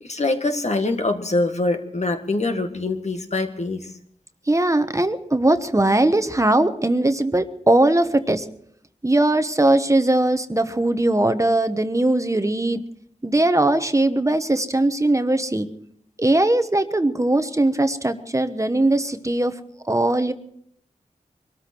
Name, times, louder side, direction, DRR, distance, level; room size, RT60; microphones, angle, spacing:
voice 1, 0.0-3.9, left 2 dB, 55° left, 5 dB, 1.9 m, -24 dB
voice 2, 4.5-8.4 9.0-12.8 13.2-15.7 16.2-19.5 19.9-20.3, right 1 dB, 25° right, 9 dB, 1.1 m, -20 dB
23.5 x 13.5 x 4.5 m, 0.68 s
wide cardioid pair, 75°, 14 cm